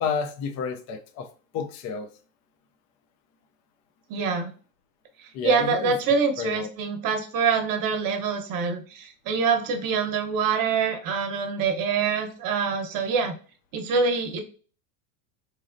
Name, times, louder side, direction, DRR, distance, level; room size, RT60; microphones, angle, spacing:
voice 1, 0.0-1.3 1.5-2.1 5.3-5.9 6.4-6.7, left 6 dB, 35° left, 0.4 m, -30 dB
voice 2, 4.1-4.5 5.4-13.3 13.7-14.4, right 5 dB, 40° right, 0.9 m, -25 dB
4.0 x 3.1 x 2.5 m
supercardioid pair, 130°, 50 cm